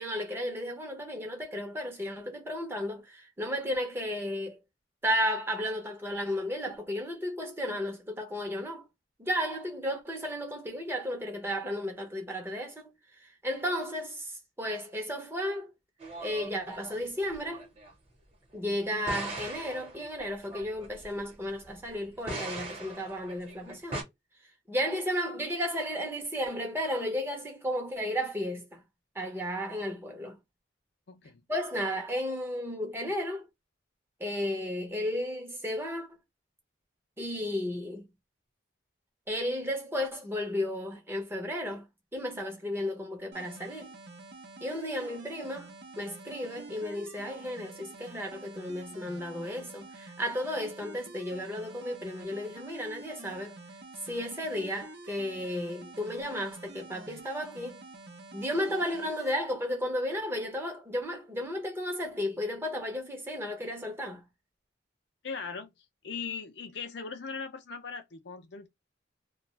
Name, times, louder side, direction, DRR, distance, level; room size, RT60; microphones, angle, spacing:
voice 1, 0.0-4.6 5.0-8.9 9.2-12.9 13.4-15.7 16.2-17.7 18.5-24.1 24.7-28.8 29.1-30.4 31.5-33.5 34.2-36.1 37.2-38.0 39.3-41.9 42.1-43.9 44.6-45.7 46.0-53.6 54.1-57.8 58.3-64.2, equal, 10° right, 0.7 m, -33 dB
sound 1, 16.0-17.9 18.9-21.9 22.2-24.0, right 2 dB, 30° right, 1.0 m, -41 dB
voice 2, 31.1-31.4 65.2-65.7 66.0-68.7, left 5 dB, 60° left, 0.5 m, -39 dB
sound 2, 43.3-59.3, right 2 dB, 55° right, 0.7 m, -48 dB
2.4 x 2.2 x 3.0 m
head